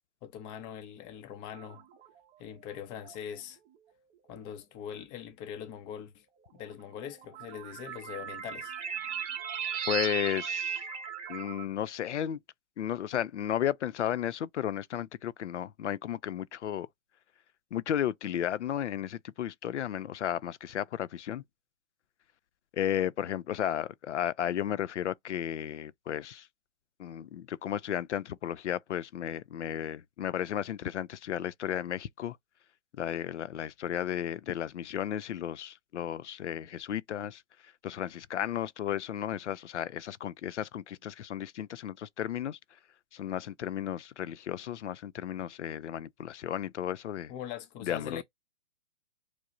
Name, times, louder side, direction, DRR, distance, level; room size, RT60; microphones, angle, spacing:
voice 1, 0.2-1.8 2.4-3.6 4.3-6.3 6.5-9.0 47.3-48.2, left 9 dB, 15° left, 0.5 m, -42 dB
sound 1, 1.5-2.2 3.0-3.2 4.3-4.4 6.6-11.6, right 8 dB, 20° right, 0.8 m, -37 dB
voice 2, 9.9-10.8 11.3-12.4 12.8-16.9 17.7-21.4 22.7-26.5 27.0-32.4 33.0-42.6 43.1-47.3 47.8-48.2, left 10 dB, 85° left, 0.5 m, -34 dB
4.7 x 2.0 x 2.5 m
hypercardioid pair, 135°, 34 cm